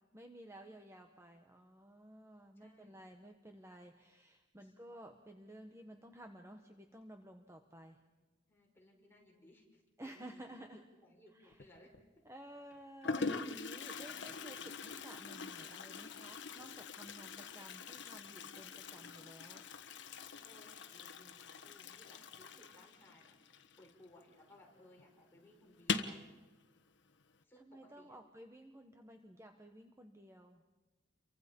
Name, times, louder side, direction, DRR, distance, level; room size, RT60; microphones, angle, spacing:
voice 1, 0.1-8.0 10.0-10.9 11.3-11.6 12.2-19.7 27.6-30.6, right 1 dB, 15° right, 4 dB, 1.3 m, -54 dB
voice 2, 2.6-3.0 4.6-4.7 8.2-12.2 20.4-23.4 23.8-26.4 27.4-28.2, left 1 dB, 10° left, -2 dB, 5.9 m, -63 dB
Toilet flush, 11.5-12.0 12.7-12.8 13.0-24.3 24.6-24.7 25.0-25.1 25.7-26.2, left 4 dB, 65° left, 1.3 m, -43 dB
30.0 x 24.0 x 5.4 m, 1.2 s
head